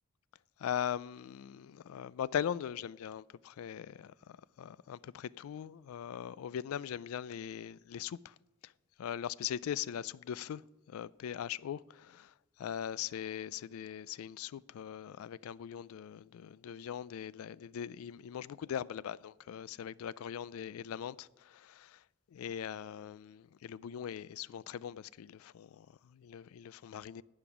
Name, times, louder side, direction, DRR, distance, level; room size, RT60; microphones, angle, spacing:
voice 1, 0.6-8.3 8.6-8.7 9.0-10.6 10.9-22.0 22.3-27.2, left 9 dB, 90° left, 0.3 m, -40 dB
12.0 x 8.7 x 6.0 m
head